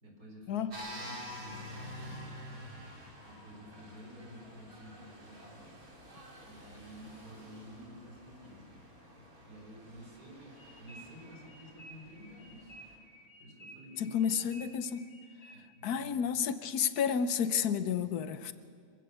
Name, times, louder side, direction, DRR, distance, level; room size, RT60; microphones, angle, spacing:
voice 1, 0.0-2.3 3.2-5.7 6.4-8.7 9.5-12.8 13.4-14.5 15.5-16.2 17.8-18.0, equal, 85° right, 0 dB, 4.8 m, -51 dB
sound 1, 0.7-12.9, left 1 dB, 70° right, 4.0 m, -49 dB
sound 2, 10.6-15.9, right 1 dB, 40° left, 3.6 m, -54 dB
voice 2, 14.0-15.0 15.8-18.5, left 7 dB, 90° left, 12 dB, 1.4 m, -31 dB
26.0 x 15.5 x 6.8 m, 2.2 s
omnidirectional pair, 1.6 m